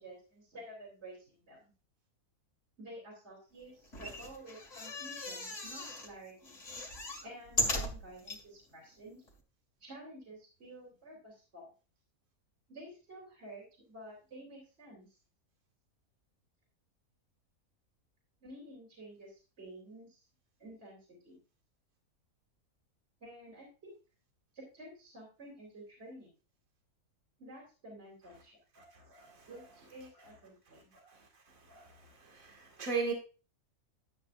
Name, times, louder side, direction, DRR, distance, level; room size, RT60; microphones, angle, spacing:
voice 1, 0.0-1.7 2.8-6.6 7.2-9.2 9.8-11.7 12.7-15.2 18.4-20.2 20.6-21.4 23.2-23.9 24.5-26.3 27.4-28.6 29.5-30.9, right 1 dB, 45° right, -2 dB, 3.5 m, -51 dB
sound 1, 3.8-6.1 6.4-8.4 9.0-9.1 9.3-9.4, left 1 dB, 55° left, 2.4 m, -37 dB
voice 2, 28.8-29.5 31.1-31.2 31.7-32.0 32.2-33.1, right 5 dB, 65° right, 1 dB, 2.5 m, -38 dB
12.0 x 8.7 x 2.5 m, 0.34 s
omnidirectional pair, 1.5 m